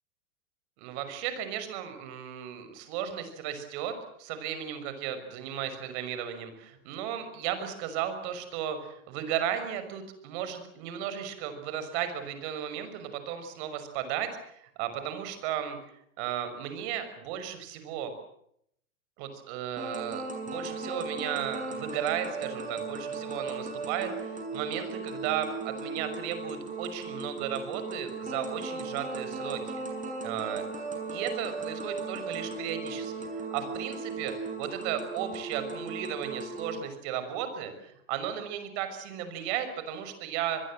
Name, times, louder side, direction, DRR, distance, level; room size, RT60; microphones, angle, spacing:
voice 1, 0.8-15.8 16.2-18.1 19.2-29.8 30.2-30.6 31.1-33.1 33.5-40.6, right 9 dB, 50° right, 9 dB, 6.1 m, -35 dB
sound 1, 19.8-36.8, right 3 dB, 20° right, 7.3 m, -37 dB
26.0 x 21.5 x 7.7 m, 0.73 s
hypercardioid pair, 115°, 41 cm